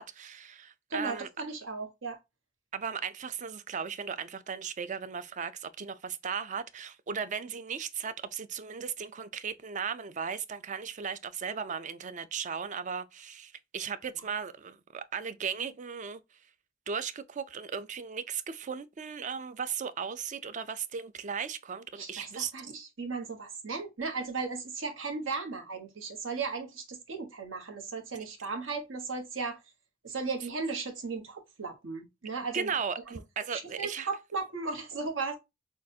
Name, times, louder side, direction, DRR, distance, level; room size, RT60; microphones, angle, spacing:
voice 1, 0.0-1.3 2.7-16.2 16.9-22.5 32.5-34.1, right 6 dB, 40° right, 0.4 m, -36 dB
voice 2, 0.9-2.2 21.9-29.6 30.0-32.7 33.1-33.2 33.5-35.4, right 4 dB, 80° right, 1.2 m, -36 dB
6.3 x 2.4 x 2.7 m
head